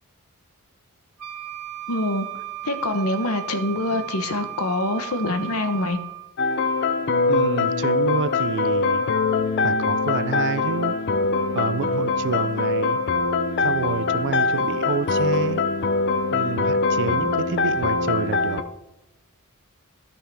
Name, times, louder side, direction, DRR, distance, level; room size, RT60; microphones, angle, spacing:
Wind instrument woodwind instrument, 1.2-6.3, right 14 dB, 90° right, 1.0 m, -35 dB
voice 1, 1.9-2.3 2.6-6.0, left 2 dB, 70° left, 8 dB, 1.0 m, -25 dB
sound 1, 6.4-18.6, left 3 dB, 50° left, 0.5 m, -23 dB
voice 2, 7.3-9.0 9.6-11.0 11.5-13.0 13.6-15.6 16.3-18.6, right 5 dB, 55° right, 15 dB, 0.4 m, -28 dB
12.5 x 5.6 x 3.4 m, 0.97 s
head